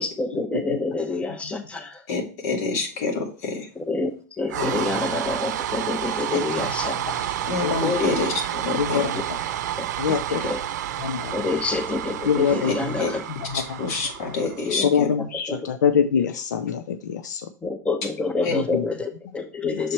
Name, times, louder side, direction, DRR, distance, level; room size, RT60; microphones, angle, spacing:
voice 1, 0.0-2.0 3.8-7.4 7.8-8.1 9.0-9.2 9.8-10.6 11.3-13.2 14.4-14.9 15.5-15.7 17.6-19.9, left 3 dB, 15° left, 6 dB, 0.9 m, -28 dB
voice 2, 2.1-3.7 7.5-9.1 12.7-13.1 13.5-15.1 18.4-18.5, left 4 dB, 60° left, 2 dB, 2.4 m, -27 dB
sound 1, 4.5-14.8, right 11 dB, 80° right, 0.6 m, -30 dB
voice 3, 7.4-7.8 8.8-9.1 10.0-10.5 11.0-11.4 12.3-12.7 13.3-13.9 14.8-17.5 18.5-18.8 19.8-19.9, left 7 dB, 90° left, 9 dB, 0.6 m, -24 dB
6.6 x 4.2 x 4.5 m, 0.37 s
supercardioid pair, 125°, 9 cm